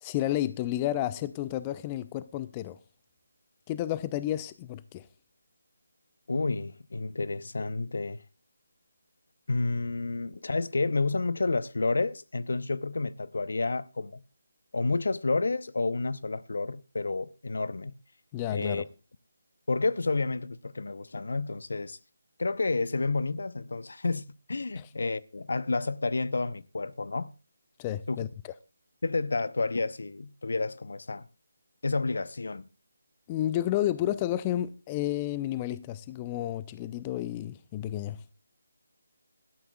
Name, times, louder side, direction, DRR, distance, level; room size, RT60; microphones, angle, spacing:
voice 1, 0.0-2.8 3.7-5.1 18.3-18.9 24.8-24.9 27.8-28.5 33.3-38.2, left 13 dB, 20° left, 0.5 m, -31 dB
voice 2, 6.3-8.2 9.5-14.2 14.7-17.9 18.5-18.8 19.7-22.0 22.4-27.3 28.1-28.3 29.0-31.3 31.8-32.6, left 3 dB, 65° left, 0.7 m, -30 dB
17.0 x 12.5 x 2.3 m
figure-of-eight pair, 155°, 0 cm